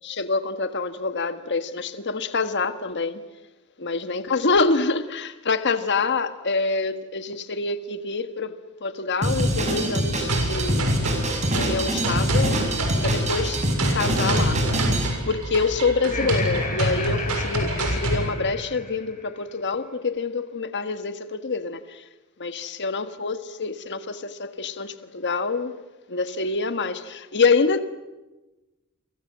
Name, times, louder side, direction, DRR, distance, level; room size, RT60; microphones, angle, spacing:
voice 1, 0.1-3.2 3.8-10.9 11.5-12.7 13.0-14.6 15.2-22.0 22.4-25.7 26.1-27.8, left 4 dB, 50° left, 1.5 m, -26 dB
Drum kit, 9.2-15.1, right 1 dB, 30° right, 6.0 m, -25 dB
sound 1, 10.3-18.3, right 1 dB, 85° right, 6.8 m, -26 dB
Laughter, 15.9-19.2, left 3 dB, 35° left, 7.9 m, -33 dB
30.0 x 24.5 x 7.6 m
head